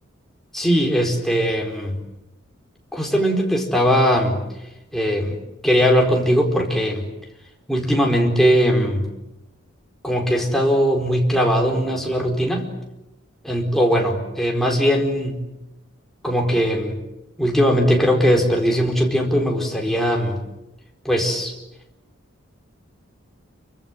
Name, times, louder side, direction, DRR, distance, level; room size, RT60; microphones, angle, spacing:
voice 1, 0.5-2.0 2.9-4.4 4.9-5.4 5.6-7.1 7.7-9.1 10.0-12.7 13.4-15.4 16.2-17.0 17.4-20.4 21.0-21.5, equal, ahead, 0 dB, 4.5 m, -19 dB
29.0 x 25.0 x 7.6 m, 0.94 s
head